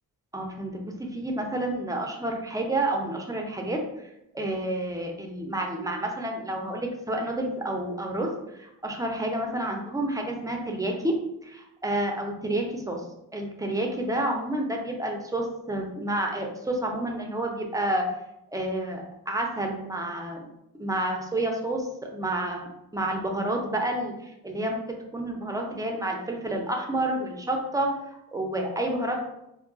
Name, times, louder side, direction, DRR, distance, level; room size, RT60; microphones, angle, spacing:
voice 1, 0.3-4.1 4.3-11.2 11.4-13.0 13.3-18.1 18.5-20.5 20.8-24.8 25.1-27.9 28.3-29.2, right 1 dB, 10° right, 1 dB, 0.4 m, -29 dB
2.3 x 2.3 x 3.6 m, 0.85 s
cardioid pair, 90°, 39 cm